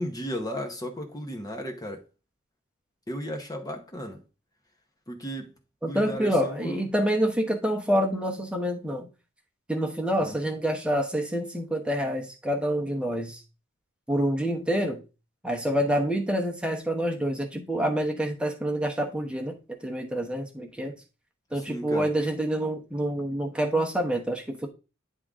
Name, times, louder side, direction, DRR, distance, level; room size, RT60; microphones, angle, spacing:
voice 1, 0.0-2.0 3.1-4.2 5.1-5.5 5.8-6.8 10.2-10.4 21.5-22.1, equal, 20° left, 1.0 m, -35 dB
voice 2, 5.8-9.1 9.7-13.4 14.1-15.0 15.4-19.5 19.8-20.9 21.5-24.7, equal, 5° right, 1.0 m, -27 dB
9.8 x 3.7 x 3.6 m
head